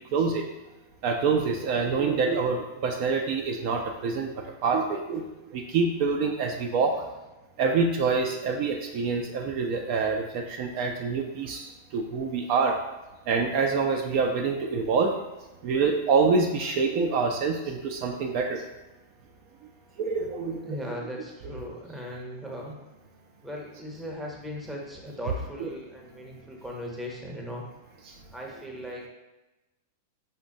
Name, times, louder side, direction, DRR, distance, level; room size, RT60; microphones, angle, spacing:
voice 1, 0.1-0.4 1.0-4.3 4.6-5.2 5.5-7.0 7.6-12.7 13.3-15.1 15.6-18.6 20.0-20.9 25.6-25.7, right 4 dB, 50° right, 2 dB, 0.4 m, -26 dB
voice 2, 20.6-22.8 23.4-27.6 28.3-29.1, equal, 5° right, -2 dB, 0.7 m, -38 dB
5.1 x 2.1 x 2.6 m, 1.1 s
hypercardioid pair, 130°, 0 cm